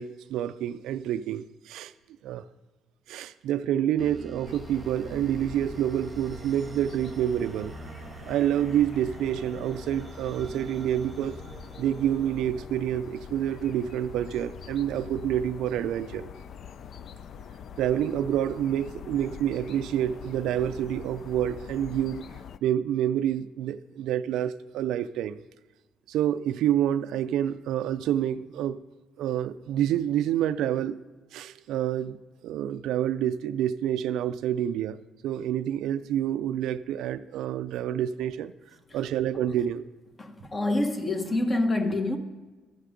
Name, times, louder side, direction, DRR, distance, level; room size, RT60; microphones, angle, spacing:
voice 1, 0.0-1.9 2.2-2.4 3.1-7.8 8.3-11.4 11.8-16.3 17.8-22.2 22.6-25.4 26.1-28.8 29.2-31.0 31.3-35.0 35.2-38.5 38.9-39.8, right 10 dB, 85° right, 0.3 m, -28 dB
sound 1, 4.0-13.4, right 4 dB, 30° right, 0.9 m, -46 dB
sound 2, 4.5-22.6, left 8 dB, 60° left, 0.3 m, -44 dB
voice 2, 40.2-42.2, left 2 dB, 30° left, 1.2 m, -27 dB
14.0 x 6.6 x 5.0 m
cardioid pair, 85°, 0 cm